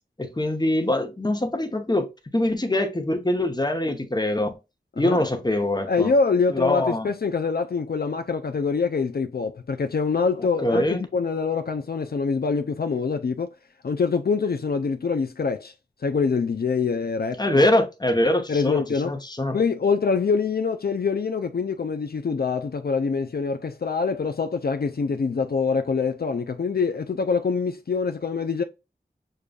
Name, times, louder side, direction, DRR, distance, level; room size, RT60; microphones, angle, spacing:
voice 1, 0.2-4.5 5.0-6.1 6.5-7.1 10.6-11.0 17.4-19.6, left 1 dB, 25° left, 0.9 m, -23 dB
voice 2, 5.9-13.5 13.8-15.7 16.0-17.6 18.5-19.1 19.5-28.6, left 5 dB, 70° left, 0.4 m, -25 dB
6.6 x 2.3 x 2.4 m
wide cardioid pair, 50°, 17 cm